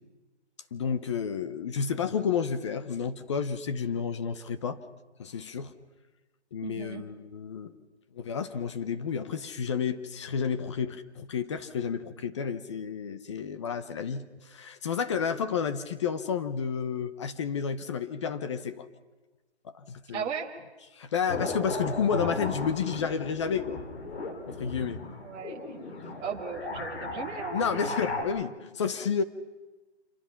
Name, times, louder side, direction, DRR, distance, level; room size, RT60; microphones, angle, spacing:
voice 1, 0.7-4.8 5.2-5.7 6.5-7.7 8.1-18.9 19.8-20.3 20.9-23.8 24.5-25.0 27.5-29.2, left 6 dB, 25° left, 11 dB, 0.8 m, -31 dB
voice 2, 6.6-7.0 20.1-20.5 23.1-23.2 25.2-25.8 26.2-28.0, right 6 dB, 15° right, 0 dB, 1.7 m, -36 dB
sound 1, 21.3-28.2, left 2 dB, 60° left, 4.5 m, -36 dB
26.5 x 23.5 x 5.8 m, 1.2 s
hypercardioid pair, 160°, 34 cm